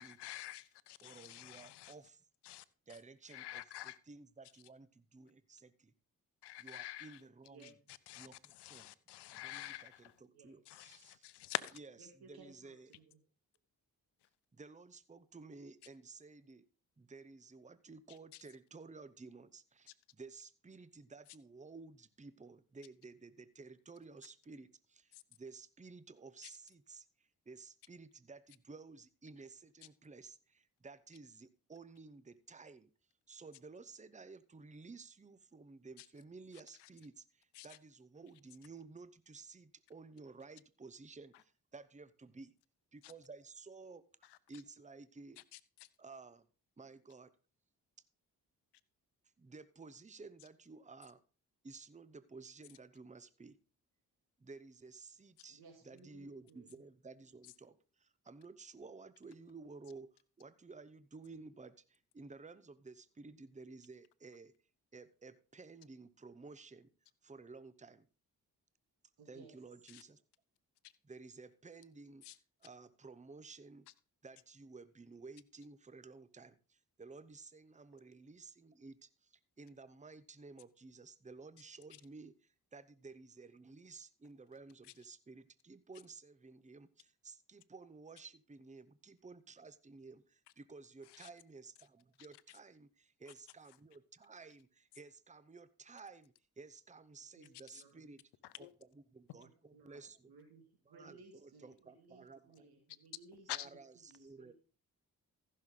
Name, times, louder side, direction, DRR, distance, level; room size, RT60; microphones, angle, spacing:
voice 1, 0.0-1.9 2.4-2.6 2.9-3.0 3.3-4.0 6.4-7.2 7.6-10.2 10.7-11.8 18.3-18.4 25.1-25.2 26.4-26.5 36.0-36.1 36.8-36.9 37.5-37.8 43.0-43.1 44.2-44.4 45.4-45.9 69.9-70.0 70.8-70.9 72.2-72.4 91.1-91.3 97.7-97.8 98.4-98.7 103.5-103.7, left 15 dB, 80° left, 0.7 m, -47 dB
voice 2, 1.0-2.2 2.9-3.6 4.1-5.9 6.6-7.7 8.2-8.9 9.3-11.3 12.3-12.9 14.5-16.6 17.0-32.9 33.3-42.5 42.9-45.4 46.0-46.5 46.8-47.3 49.4-51.2 51.6-53.6 54.4-55.6 55.8-60.1 60.4-64.5 64.9-66.9 67.2-68.0 69.3-70.2 71.0-72.2 72.6-73.9 74.2-98.2 98.6-98.7 99.1-100.3 100.9-102.6 103.5-104.5, right 4 dB, 20° right, 0.9 m, -54 dB
voice 3, 7.4-7.7 10.3-10.5 12.0-13.2 55.5-56.8 69.2-69.6 97.1-98.0 99.4-100.0 100.3-103.8 104.0-104.5, right 4 dB, 65° right, 2.2 m, -60 dB
15.0 x 6.6 x 3.8 m
supercardioid pair, 45°, 40 cm